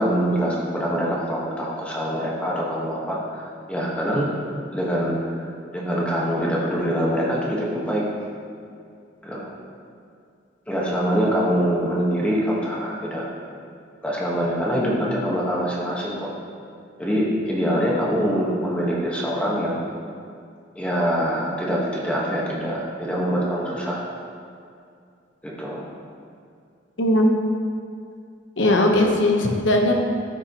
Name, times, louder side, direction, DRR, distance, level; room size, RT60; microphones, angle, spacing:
voice 1, 0.0-4.3 4.7-8.0 9.2-9.5 10.7-13.3 14.0-16.3 17.0-19.8 20.7-24.0 25.4-25.9, equal, 5° left, -5 dB, 1.2 m, -24 dB
voice 2, 27.0-27.3 28.6-29.9, left 1 dB, 85° left, 2 dB, 0.9 m, -18 dB
13.5 x 5.9 x 2.9 m, 2.3 s
head